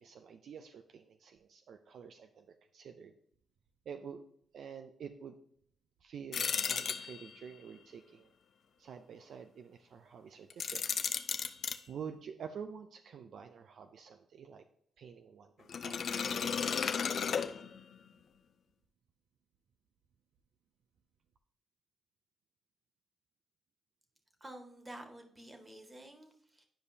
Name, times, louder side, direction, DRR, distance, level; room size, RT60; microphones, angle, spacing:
voice 1, 0.0-3.1 3.9-4.3 4.5-5.3 6.0-8.3 8.8-10.9 11.9-14.6 15.0-16.5, right 7 dB, 70° right, 7 dB, 0.5 m, -48 dB
sound 1, 6.3-7.5 10.5-11.8 15.7-18.0, left 7 dB, 65° left, 0.5 m, -34 dB
voice 2, 24.4-26.6, right 1 dB, 25° right, 4 dB, 1.7 m, -50 dB
10.0 x 5.0 x 2.7 m, 0.66 s
supercardioid pair, 50°, 0 cm